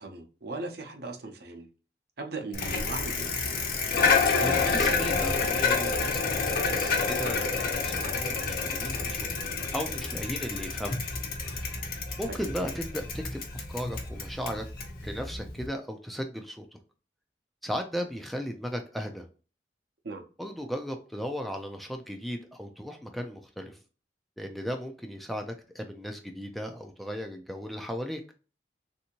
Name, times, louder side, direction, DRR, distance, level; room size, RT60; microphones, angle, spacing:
voice 1, 0.0-1.7 2.2-3.3 12.3-12.4 20.0-20.2, right 3 dB, 60° right, 4 dB, 0.7 m, -38 dB
Bicycle, 2.5-15.7, left 4 dB, 55° left, 0.8 m, -29 dB
voice 2, 4.4-9.3 9.7-11.0 11.5-11.8 12.2-14.7 15.0-16.8 17.6-19.3 20.4-23.8 24.4-28.2, equal, ahead, 4 dB, 0.3 m, -36 dB
3.3 x 2.7 x 2.8 m, 0.35 s
head